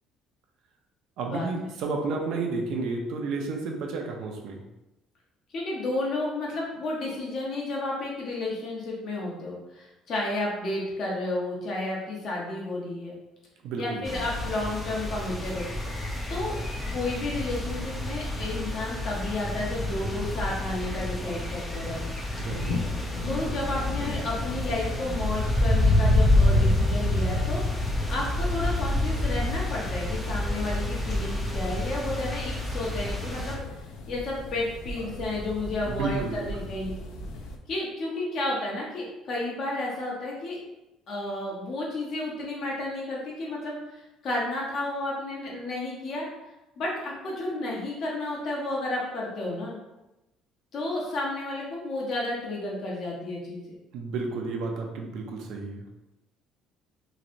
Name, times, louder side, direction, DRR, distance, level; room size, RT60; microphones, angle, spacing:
voice 1, 1.2-4.6 13.6-14.0 22.4-22.6 35.9-36.5 53.9-55.8, right 3 dB, 70° right, 2 dB, 0.6 m, -31 dB
voice 2, 5.5-13.1 13.8-15.7 16.3-16.5 16.9-22.1 23.2-27.8 28.1-33.6 34.1-36.9 37.7-40.6 41.1-46.3 46.8-49.8 50.7-53.8, left 2 dB, 50° left, -3 dB, 1.0 m, -32 dB
sound 1, 14.0-33.6, left 1 dB, 10° left, 0.5 m, -28 dB
sound 2, 22.5-37.6, left 2 dB, 75° left, 0.4 m, -38 dB
3.1 x 2.8 x 2.6 m, 0.98 s
cardioid pair, 135°, 0 cm